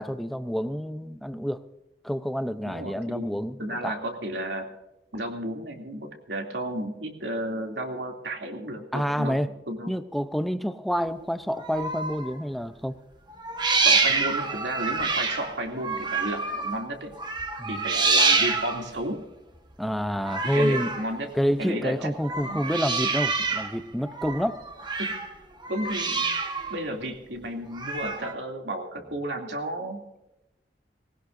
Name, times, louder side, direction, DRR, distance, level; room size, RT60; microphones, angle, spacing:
voice 1, 0.0-1.6 2.0-3.9 8.9-9.5 9.9-13.0 14.1-14.2 17.6-17.7 19.8-20.9 21.3-24.6, equal, ahead, 10 dB, 0.6 m, -28 dB
voice 2, 2.6-4.7 5.1-9.4 9.7-9.9 13.8-17.2 17.7-19.2 20.5-21.3 21.6-22.1 22.4-22.6 25.0-25.1 25.7-26.3 26.7-30.0, right 1 dB, 75° right, 3 dB, 2.7 m, -33 dB
sound 1, 11.5-12.3 13.4-16.8 17.2-19.0 20.2-21.1 22.2-23.8 24.1-25.3 25.6-26.8 27.7-28.3, right 4 dB, 25° right, 1.3 m, -27 dB
20.5 x 18.0 x 2.6 m, 0.94 s
head